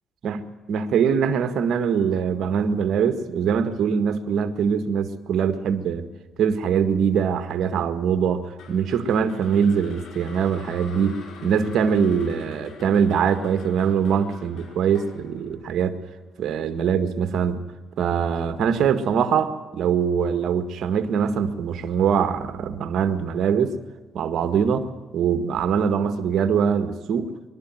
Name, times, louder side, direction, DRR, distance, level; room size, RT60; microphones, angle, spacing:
voice 1, 0.7-6.1 6.4-16.0 16.4-17.6 18.0-23.8 24.1-27.3, right 7 dB, 70° right, 10 dB, 1.8 m, -23 dB
sound 1, 8.6-16.8, left 5 dB, 70° left, 4.6 m, -44 dB
23.5 x 12.0 x 9.3 m, 1.3 s
cardioid pair, 90°, 0 cm